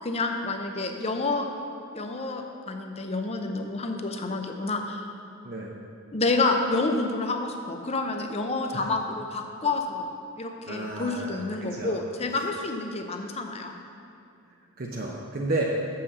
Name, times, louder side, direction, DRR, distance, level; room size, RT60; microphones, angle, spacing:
voice 1, 0.0-1.5 1.9-5.0 6.1-10.0 10.4-13.8, left 3 dB, 30° left, 4 dB, 0.6 m, -29 dB
voice 2, 10.7-12.0 14.8-15.6, right 2 dB, 45° right, -2 dB, 0.7 m, -32 dB
6.9 x 5.7 x 6.7 m, 2.5 s
head